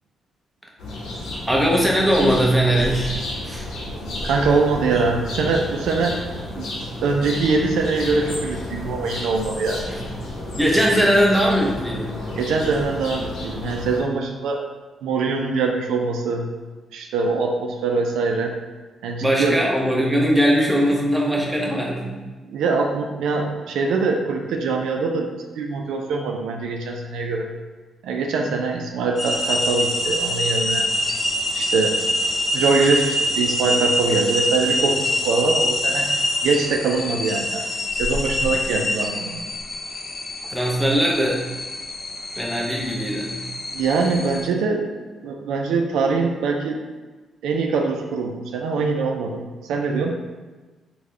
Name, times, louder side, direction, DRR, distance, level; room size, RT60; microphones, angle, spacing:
sound 1, 0.8-14.0, left 1 dB, 75° left, 0.8 m, -31 dB
voice 1, 1.5-3.1 3.4-3.6 9.9-10.0 10.6-12.2 19.2-22.2 40.5-41.4 42.4-43.4, equal, 5° right, -3 dB, 0.8 m, -20 dB
voice 2, 4.2-6.2 6.6-6.7 7.0-9.8 12.3-14.6 15.0-16.5 16.9-18.5 19.0-19.6 22.4-25.3 25.6-27.5 28.0-30.9 31.5-32.0 32.5-36.1 36.4-37.6 37.9-39.4 43.7-44.9 45.2-46.8 47.4-50.2, right 4 dB, 80° right, 2 dB, 0.3 m, -23 dB
sound 2, 29.2-44.5, left 1 dB, 35° left, 0.4 m, -25 dB
3.6 x 2.2 x 3.1 m, 1.3 s
supercardioid pair, 65°, 0 cm